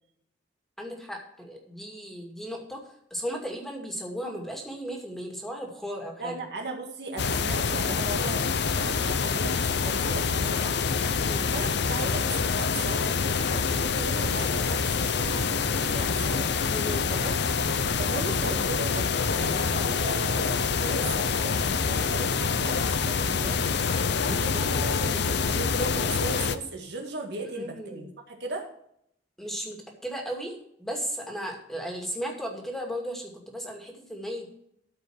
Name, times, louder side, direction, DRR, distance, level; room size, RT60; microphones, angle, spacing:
voice 1, 0.8-6.4 11.2-11.5 16.7-17.0 27.5-28.1 29.4-34.5, equal, ahead, 1 dB, 2.3 m, -35 dB
voice 2, 6.2-10.8 11.5-16.5 17.1-17.3 18.0-23.6 23.9-28.6, right 3 dB, 60° right, 2 dB, 1.9 m, -37 dB
sound 1, 7.2-26.6, left 5 dB, 60° left, 0.7 m, -26 dB
13.5 x 5.1 x 6.3 m, 0.72 s
head